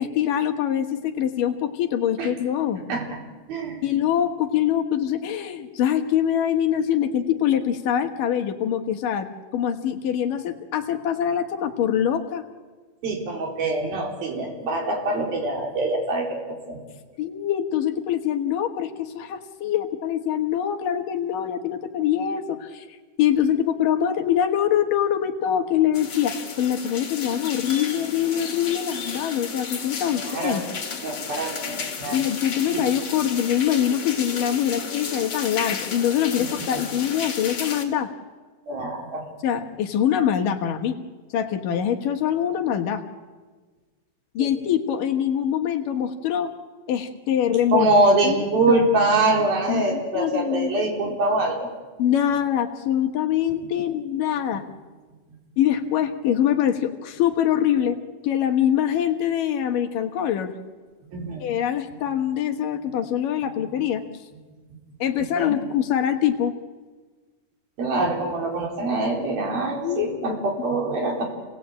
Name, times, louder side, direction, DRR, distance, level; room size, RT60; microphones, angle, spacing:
voice 1, 0.0-2.8 3.8-9.3 9.5-12.4 17.2-30.6 32.1-38.1 39.4-41.0 41.3-43.0 44.3-46.5 46.9-47.9 48.2-48.4 48.7-48.8 49.7-50.7 52.0-54.6 55.6-58.0 58.2-60.5 61.4-64.0 65.0-66.5 69.8-70.2, left 10 dB, 70° left, 5 dB, 2.9 m, -24 dB
voice 2, 3.5-3.9 13.0-16.8 30.1-30.7 31.0-32.2 32.7-32.8 36.4-36.5 38.7-39.2 44.4-44.5 47.7-51.7 61.1-61.4 65.4-65.6 67.8-71.2, right 2 dB, 80° right, 1 dB, 5.8 m, -24 dB
sound 1, 25.9-37.8, left 5 dB, 45° left, 3.2 m, -33 dB
28.5 x 18.5 x 8.7 m, 1.4 s
omnidirectional pair, 4.2 m